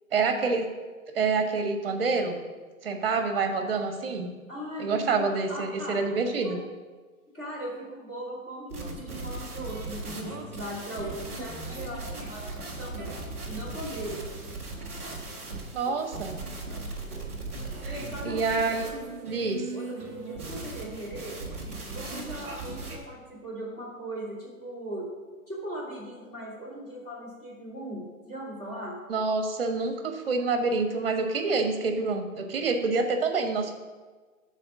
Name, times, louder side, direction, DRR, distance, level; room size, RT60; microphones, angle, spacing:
voice 1, 0.1-0.7 1.1-2.4 2.8-4.3 4.8-6.6 15.7-16.4 17.8-18.9 19.2-19.7 29.1-33.8, right 4 dB, 40° right, 5 dB, 1.2 m, -27 dB
voice 2, 4.5-6.0 6.4-6.6 7.3-13.2 13.4-14.2 15.9-16.0 16.3-16.8 17.6-19.1 19.7-21.4 21.9-25.1 25.5-29.0, right 1 dB, 15° left, -8 dB, 2.6 m, -39 dB
sound 1, 8.7-23.0, right 3 dB, 10° right, 0.5 m, -38 dB
9.7 x 4.2 x 6.2 m, 1.4 s
hypercardioid pair, 165°, 43 cm